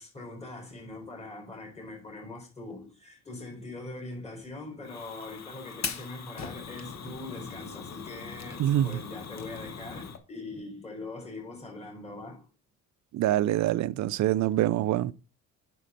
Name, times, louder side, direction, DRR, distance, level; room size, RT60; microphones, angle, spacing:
voice 1, 0.0-12.4, left 2 dB, 20° left, 4.2 m, -42 dB
Fire, 4.8-10.2, left 6 dB, 55° left, 1.4 m, -40 dB
voice 2, 8.6-9.0 13.1-15.1, right 13 dB, 60° right, 0.5 m, -25 dB
9.3 x 6.3 x 4.2 m
cardioid pair, 120°, 32 cm